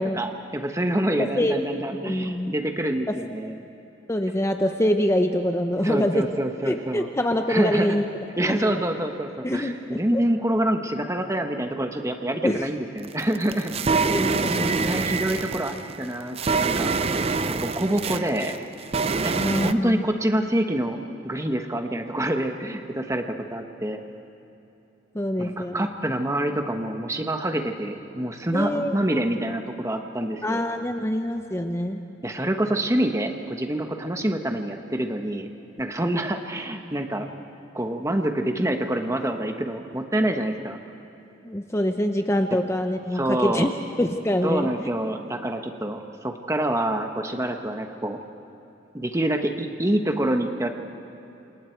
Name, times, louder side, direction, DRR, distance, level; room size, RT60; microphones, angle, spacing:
voice 1, 0.0-3.6 5.8-7.1 7.5-8.0 8.4-13.7 14.4-14.5 14.8-16.9 17.6-18.6 19.2-21.0 21.2-24.0 25.4-30.6 32.2-35.5 35.8-37.3 37.7-40.8 43.1-43.7 44.4-48.2 48.9-50.7, right 1 dB, 15° right, 5 dB, 1.1 m, -26 dB
voice 2, 2.0-2.5 4.1-6.2 6.6-8.0 8.4-8.7 9.4-10.2 12.4-12.7 14.1-15.0 19.4-20.0 25.1-25.9 28.5-28.9 30.4-32.0 41.4-43.7 44.0-44.9, equal, 15° left, 5 dB, 0.7 m, -25 dB
sound 1, 13.0-19.7, right 4 dB, 30° right, 0.5 m, -25 dB
28.5 x 27.0 x 4.6 m, 2.9 s
head